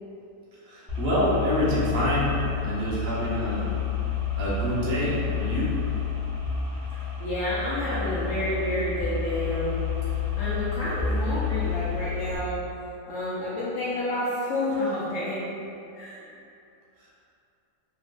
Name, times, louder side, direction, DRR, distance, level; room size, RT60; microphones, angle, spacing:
voice 1, 0.6-2.3 2.6-3.7 4.4-5.7 17.0-17.2, equal, 50° right, -7 dB, 0.7 m, -27 dB
sound 1, 0.9-12.4, left 6 dB, 20° left, 1.5 m, -30 dB
voice 2, 7.2-9.8 10.4-12.6 13.0-15.4 15.9-16.2, left 1 dB, 70° left, -8 dB, 0.8 m, -29 dB
3.3 x 3.0 x 2.5 m, 2.7 s
omnidirectional pair, 1.8 m